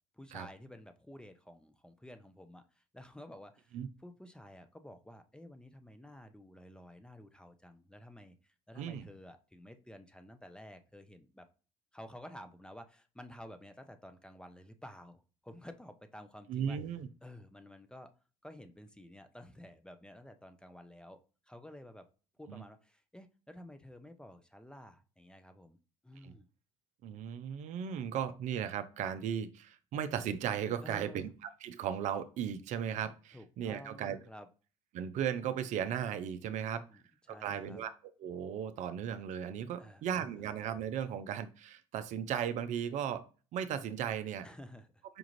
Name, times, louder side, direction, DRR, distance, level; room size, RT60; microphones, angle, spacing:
voice 1, 0.1-11.5 11.9-16.8 17.2-18.1 18.4-21.2 21.5-22.1 22.4-25.8 26.0-26.5 30.8-31.3 33.3-34.5 36.5-37.8 39.8-40.2 44.4-45.0, left 1 dB, 5° left, 8 dB, 0.5 m, -52 dB
voice 2, 16.5-17.1 22.5-22.6 26.2-26.3 27.0-31.3 31.6-34.2 34.9-37.0 37.4-37.9 38.2-43.3 43.5-44.5, right 9 dB, 60° right, 10 dB, 0.5 m, -36 dB
5.1 x 2.4 x 3.0 m, 0.35 s
hypercardioid pair, 70°, 14 cm